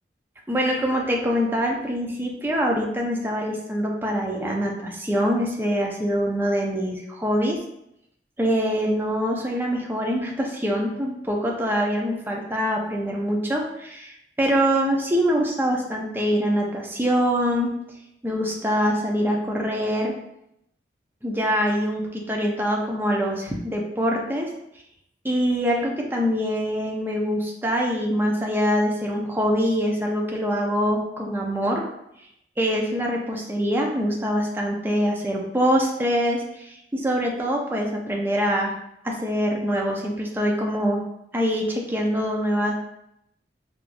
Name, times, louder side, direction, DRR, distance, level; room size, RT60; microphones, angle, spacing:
voice 1, 0.5-7.6 8.4-17.7 18.2-20.1 21.2-24.5 25.2-31.9 32.6-38.7 39.0-41.0 41.3-42.7, equal, 10° right, -1 dB, 0.4 m, -24 dB
4.7 x 2.5 x 2.5 m, 0.81 s
head